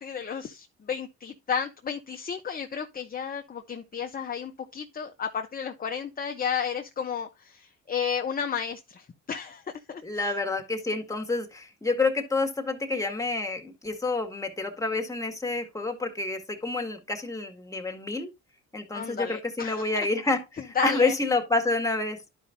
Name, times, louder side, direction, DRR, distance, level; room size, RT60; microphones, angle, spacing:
voice 1, 0.0-9.6 9.9-10.3 18.9-20.1 20.7-21.1, left 7 dB, 30° left, 0.8 m, -32 dB
voice 2, 10.0-18.3 18.7-22.2, left 3 dB, 10° left, 1.8 m, -28 dB
11.5 x 5.2 x 2.6 m
cardioid pair, 90°, 30 cm